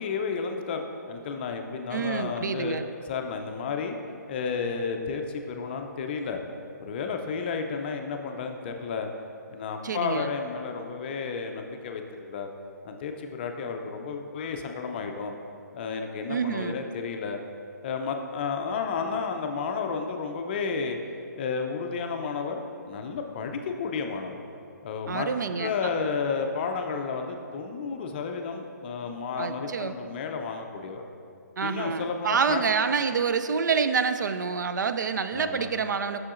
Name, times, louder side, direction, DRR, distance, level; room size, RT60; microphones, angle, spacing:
voice 1, 0.0-2.8 3.0-4.0 4.3-6.4 6.8-9.1 9.5-12.0 12.3-12.5 12.8-15.3 15.7-17.4 17.8-21.0 21.4-24.4 24.8-25.3 25.6-31.0 31.6-32.6 35.3-35.6, left 5 dB, 35° left, 4 dB, 0.4 m, -32 dB
voice 2, 1.9-2.8 9.8-10.3 16.3-16.8 25.1-25.7 29.4-29.9 31.6-36.2, right 5 dB, 70° right, 10 dB, 0.4 m, -27 dB
7.2 x 6.3 x 2.5 m, 2.5 s
hypercardioid pair, 145°, 10 cm